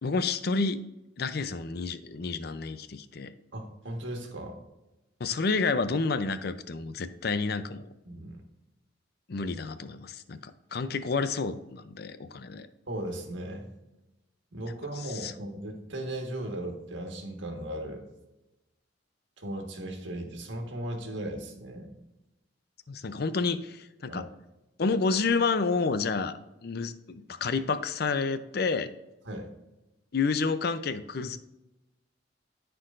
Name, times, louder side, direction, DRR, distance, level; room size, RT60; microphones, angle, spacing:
voice 1, 0.0-0.8 1.2-3.3 5.2-7.9 9.3-12.7 15.2-15.3 22.9-24.3 24.8-28.9 30.1-31.4, left 4 dB, 60° left, 12 dB, 0.5 m, -29 dB
voice 2, 3.5-4.6 8.0-8.4 12.9-13.7 14.5-18.0 19.4-21.9 24.1-24.2 29.2-29.5, right 1 dB, 85° right, 3 dB, 1.5 m, -37 dB
14.0 x 4.6 x 2.5 m, 0.98 s
head